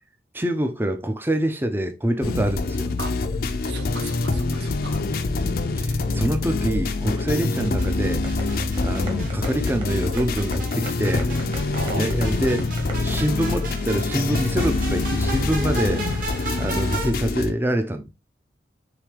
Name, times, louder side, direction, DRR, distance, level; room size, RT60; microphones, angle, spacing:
voice 1, 0.3-2.9 5.8-8.2 8.8-11.3 11.9-12.7 13.0-16.0 16.6-18.1, right 1 dB, 10° right, 0.5 m, -25 dB
sound 1, 2.2-17.5, left 3 dB, 55° left, 0.5 m, -25 dB
voice 2, 3.6-5.0 11.7-12.0, right 2 dB, 70° right, 1.2 m, -35 dB
sound 2, 7.3-17.1, right 3 dB, 50° right, 1.6 m, -36 dB
sound 3, 8.2-13.1, right 1 dB, 30° right, 1.4 m, -36 dB
4.9 x 3.3 x 3.3 m
head